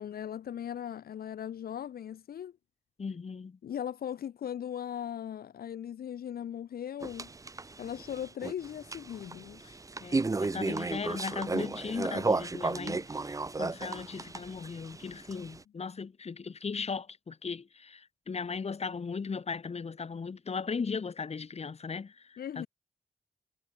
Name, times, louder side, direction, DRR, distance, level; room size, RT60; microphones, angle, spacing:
voice 1, 0.0-2.5 3.6-7.3 7.8-9.8 22.4-22.7, left 9 dB, 80° left, 0.5 m, -38 dB
voice 2, 3.0-3.6 10.0-22.7, left 5 dB, 45° left, 0.9 m, -37 dB
sound 1, 7.0-15.6, right 3 dB, 20° right, 0.5 m, -34 dB
cardioid pair, 70°, 15 cm